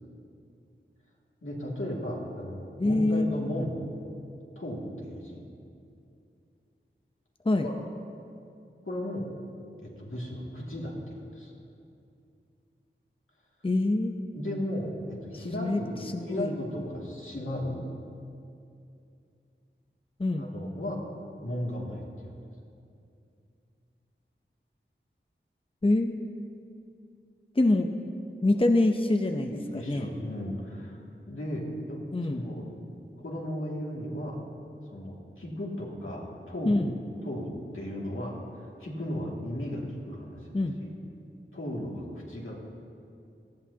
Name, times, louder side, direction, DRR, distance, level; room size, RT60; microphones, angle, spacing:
voice 1, 1.4-3.8 4.6-5.4 7.6-7.7 8.9-9.3 9.8-11.5 14.3-16.0 16.3-17.8 20.4-21.0 21.4-22.3 29.5-31.0 31.3-32.0 32.3-32.8 33.2-34.4 34.9-36.8 37.2-40.5 40.8-40.9 41.5-42.6, left 1 dB, 85° left, -4 dB, 2.4 m, -35 dB
voice 2, 2.8-3.5 7.4-7.7 13.6-14.1 15.3-15.8 16.1-16.6 20.2-20.4 25.8-26.2 27.6-27.9 28.4-30.1 32.1-32.4 36.7-36.9 40.5-40.8, left 2 dB, 25° left, 5 dB, 0.7 m, -25 dB
18.0 x 14.0 x 2.8 m, 2.5 s
wide cardioid pair, 50°, 21 cm